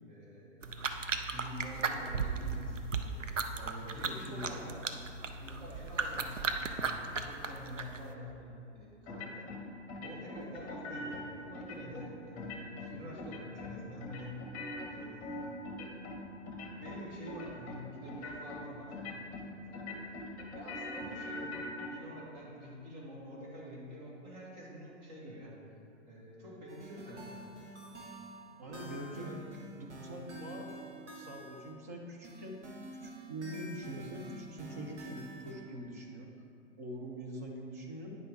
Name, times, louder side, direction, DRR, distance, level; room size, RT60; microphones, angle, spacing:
voice 1, 0.1-0.6 1.3-3.3 3.6-4.8 5.4-9.5 10.0-14.5 14.9-15.5 16.8-20.2 20.5-21.6 21.9-25.6 26.1-28.0 28.7-29.4, equal, 35° right, -4 dB, 1.9 m, -47 dB
sound 1, 0.6-8.1, right 4 dB, 90° right, 0.6 m, -36 dB
voice 2, 3.5-4.7 12.8-13.0 28.6-30.7 31.1-32.6 33.0-36.3 36.8-38.1, right 1 dB, 15° right, -1 dB, 0.3 m, -44 dB
sound 2, 9.1-9.6 9.9-11.2 11.5-12.1 12.4-12.9 13.2-13.7 14.0-16.2 16.5-17.0 17.3-17.8 18.1-18.6 18.9-19.5 19.7-21.9, left 2 dB, 25° left, 1.1 m, -42 dB
sound 3, 26.7-31.7 32.2-35.5, right 1 dB, 70° right, 1.6 m, -48 dB
9.3 x 5.5 x 3.5 m, 2.6 s
figure-of-eight pair, 110°, 36 cm